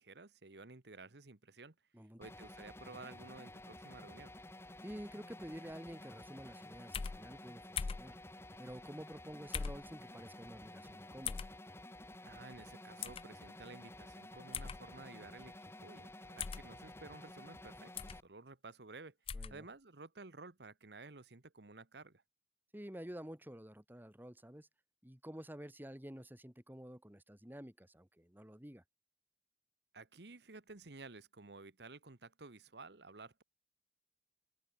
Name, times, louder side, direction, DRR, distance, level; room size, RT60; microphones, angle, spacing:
voice 1, 0.0-1.7 2.2-4.3 12.2-15.5 15.8-19.1 19.5-22.2 29.9-33.4, right 3 dB, 65° right, 1.4 m, -53 dB
sound 1, 2.2-18.2, left 1 dB, 15° left, 1.8 m, -52 dB
voice 2, 4.8-8.2 8.6-11.4 19.3-19.6 22.7-24.7 25.0-28.8, equal, 10° right, 2.0 m, -50 dB
sound 2, 6.9-7.2 7.8-8.1 9.5-9.8 11.2-11.5 13.0-13.2 14.5-14.8 16.4-16.6 18.0-18.2 19.3-19.5, left 6 dB, 30° left, 0.4 m, -39 dB
head